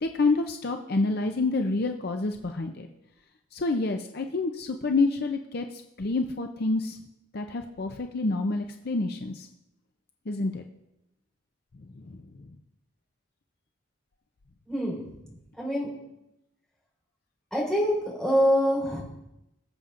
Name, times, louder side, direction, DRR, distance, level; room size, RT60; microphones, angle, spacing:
voice 1, 0.0-2.9 3.5-5.7 6.0-7.0 7.3-9.5 10.3-10.6, left 3 dB, 50° left, 5 dB, 0.5 m, -28 dB
voice 2, 14.7-15.0 15.6-15.9 17.5-19.0, equal, 5° left, -6 dB, 4.1 m, -25 dB
21.0 x 7.3 x 2.5 m, 0.88 s
head